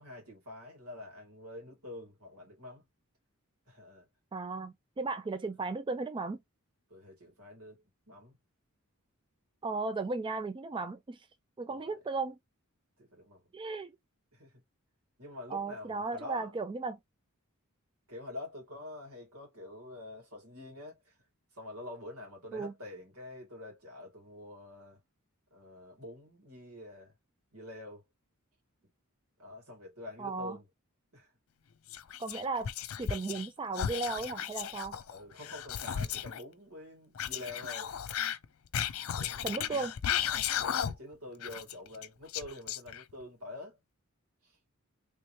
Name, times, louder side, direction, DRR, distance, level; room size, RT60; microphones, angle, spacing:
voice 1, 0.0-2.8 3.7-4.1 6.9-8.4 11.7-12.0 13.0-13.5 14.3-14.6 15.2-16.5 18.1-21.2 21.5-25.0 25.5-27.1 27.5-28.0 28.8-28.9 29.4-30.7 31.1-31.3 35.1-38.0 39.1-39.9 40.6-43.8 44.4-44.6, left 2 dB, 90° right, 2.2 m, -47 dB
voice 2, 4.3-6.4 9.6-11.3 11.6-12.4 13.5-13.9 15.5-17.0 22.5-22.7 30.2-30.6 32.2-32.7 33.0-35.0 39.4-39.9, right 3 dB, 20° right, 0.3 m, -35 dB
Whispering, 31.9-33.5 33.7-36.4 37.2-41.1 41.4-43.2, left 9 dB, 70° left, 0.4 m, -35 dB
3.4 x 3.1 x 2.8 m
head